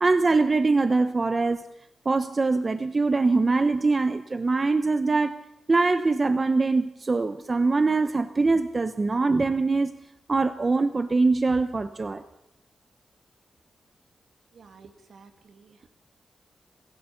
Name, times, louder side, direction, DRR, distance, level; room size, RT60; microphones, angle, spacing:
voice 1, 0.0-1.7 2.0-5.4 5.7-9.9 10.3-12.2, right 3 dB, 40° right, 11 dB, 1.0 m, -23 dB
voice 2, 14.5-15.9, right 5 dB, 75° right, 7 dB, 2.3 m, -52 dB
26.5 x 16.0 x 7.2 m, 0.89 s
cardioid pair, 65°, 0 cm